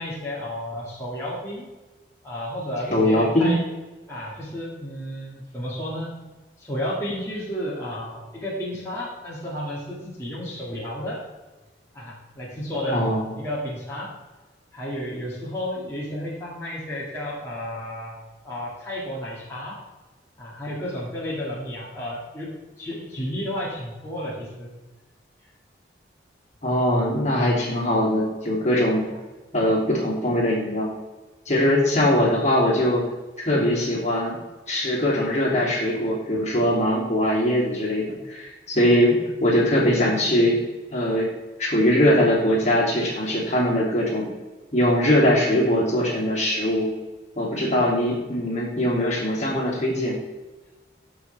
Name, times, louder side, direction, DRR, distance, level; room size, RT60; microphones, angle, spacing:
voice 1, 0.0-1.7 2.2-3.6 4.1-6.1 6.6-11.2 11.9-13.0 13.4-14.1 14.7-18.1 18.4-19.8 20.4-22.5 22.8-24.7 29.1-29.2, equal, 15° left, -7 dB, 2.2 m, -32 dB
voice 2, 2.9-3.5 12.9-13.3 26.6-29.0 29.5-30.9 31.5-33.1 33.4-34.4 34.7-40.6 40.9-41.3 41.6-44.3 44.7-46.9 47.3-50.2, left 1 dB, 35° left, -4 dB, 2.9 m, -21 dB
15.0 x 5.8 x 3.5 m, 1.2 s
head